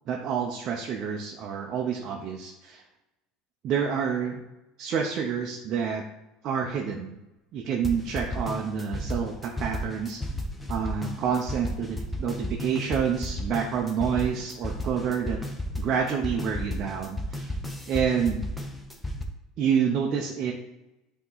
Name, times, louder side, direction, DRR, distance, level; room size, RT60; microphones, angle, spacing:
voice 1, 0.1-2.8 3.6-4.4 4.8-6.0 6.4-7.1 7.5-10.2 10.7-15.4 15.8-17.5 17.9-18.5 19.6-20.5, right 7 dB, 40° right, 0 dB, 0.6 m, -28 dB
sound 1, 7.8-19.2, left 1 dB, 5° left, 0.6 m, -33 dB
8.3 x 3.0 x 3.9 m, 0.98 s
cardioid pair, 160°, 0 cm